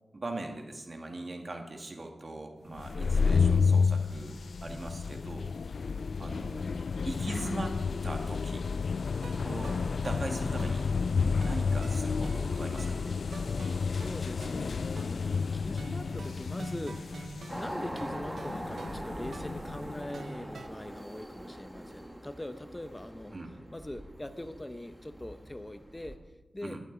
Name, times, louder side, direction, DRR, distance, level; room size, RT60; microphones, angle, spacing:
voice 1, 0.1-5.5 6.2-6.7 7.1-7.8 8.0-8.7 9.4-9.8 10.0-10.9 11.4-13.0 23.3-23.5 26.6-26.8, right 2 dB, 45° right, 3 dB, 1.9 m, -40 dB
sound 1, 2.8-20.2, left 5 dB, 80° left, 0.3 m, -31 dB
sound 2, 9.2-20.7, right 3 dB, 85° right, 0.8 m, -47 dB
voice 2, 13.9-23.4 23.7-26.2 26.5-26.8, left 1 dB, 20° left, 9 dB, 0.9 m, -42 dB
sound 3, 17.5-26.2, equal, 10° right, 1.7 m, -42 dB
14.0 x 11.0 x 4.0 m, 1.1 s
wide cardioid pair, 65°, 0 cm